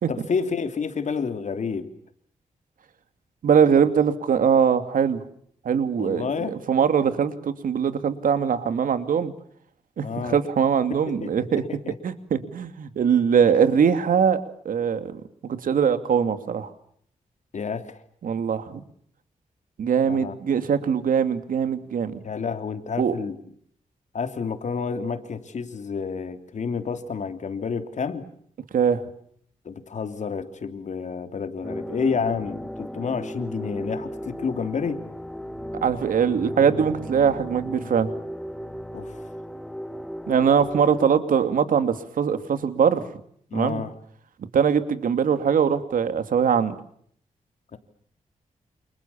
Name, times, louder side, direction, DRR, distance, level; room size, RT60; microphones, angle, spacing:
voice 1, 0.1-1.9 6.0-6.6 10.0-10.4 11.2-11.9 17.5-18.0 20.0-20.3 20.6-20.7 22.2-23.4 24.1-28.2 29.6-35.0 38.9-39.2 43.5-43.9 47.7-47.8, left 5 dB, 60° left, 8 dB, 3.2 m, -29 dB
voice 2, 3.4-5.2 5.6-9.3 10.0-11.6 12.0-16.7 18.2-18.8 19.8-22.2 23.0-23.2 28.7-29.0 35.8-38.1 40.3-43.0 43.5-43.8 44.5-46.7, right 7 dB, 85° right, 10 dB, 2.7 m, -22 dB
sound 1, 31.6-41.1, equal, 5° left, 1.7 m, -36 dB
28.5 x 28.5 x 7.1 m, 0.65 s
wide cardioid pair, 115°, 14 cm